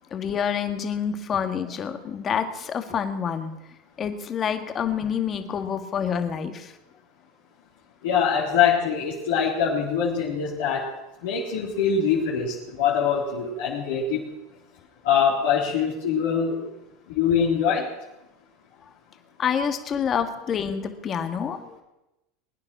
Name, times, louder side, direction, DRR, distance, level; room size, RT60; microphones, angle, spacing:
voice 1, 0.1-3.5 4.0-6.8 19.4-21.8, left 7 dB, 35° left, 7 dB, 2.0 m, -27 dB
voice 2, 8.0-10.9 11.2-14.3 15.0-16.7 17.2-17.9, left 7 dB, 75° left, -5 dB, 3.9 m, -23 dB
22.0 x 9.8 x 6.3 m, 0.96 s
hypercardioid pair, 95°, 0 cm